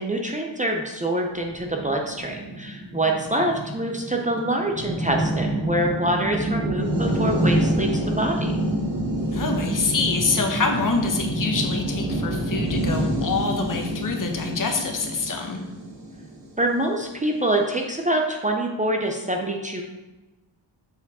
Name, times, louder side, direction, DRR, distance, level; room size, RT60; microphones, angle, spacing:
voice 1, 0.0-8.5 16.6-19.8, right 1 dB, 15° right, 1 dB, 0.6 m, -25 dB
sound 1, 1.4-16.9, right 1 dB, 70° right, 2.5 m, -27 dB
voice 2, 9.3-15.6, left 4 dB, 45° left, 3 dB, 1.1 m, -26 dB
6.9 x 4.8 x 4.2 m, 1.1 s
wide cardioid pair, 125°, 45 cm